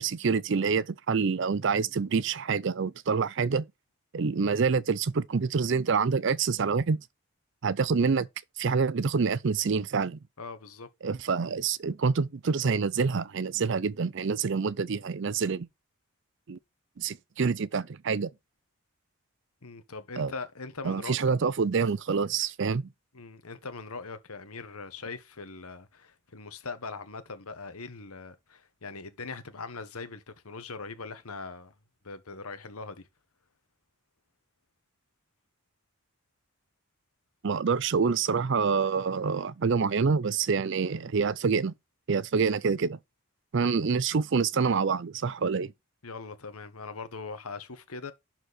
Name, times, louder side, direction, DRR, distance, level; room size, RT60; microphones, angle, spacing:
voice 1, 0.0-3.7 4.1-7.0 7.6-8.3 8.6-10.2 11.0-15.7 16.5-16.6 17.0-18.3 20.2-20.3 20.8-22.9 37.4-41.7 42.1-43.0 43.5-45.7, right 5 dB, 55° right, 0.5 m, -27 dB
voice 2, 10.4-10.9 19.6-21.3 23.1-31.7 32.0-33.1 46.0-48.1, left 4 dB, 80° left, 1.3 m, -41 dB
11.5 x 4.6 x 4.2 m
head